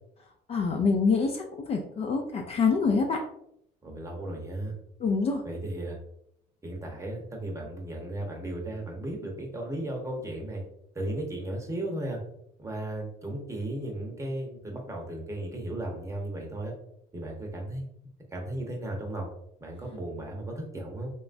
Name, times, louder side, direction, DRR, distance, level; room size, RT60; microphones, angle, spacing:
voice 1, 0.5-3.2 5.0-5.4, left 4 dB, 35° left, 2 dB, 0.3 m, -26 dB
voice 2, 3.8-4.8 5.4-6.0 6.6-10.6 10.9-12.2 12.6-16.7 17.1-17.9 18.3-19.3 19.6-21.1, right 1 dB, 15° right, 0 dB, 0.8 m, -35 dB
3.0 x 2.3 x 2.5 m, 0.74 s
cardioid pair, 110°, 17 cm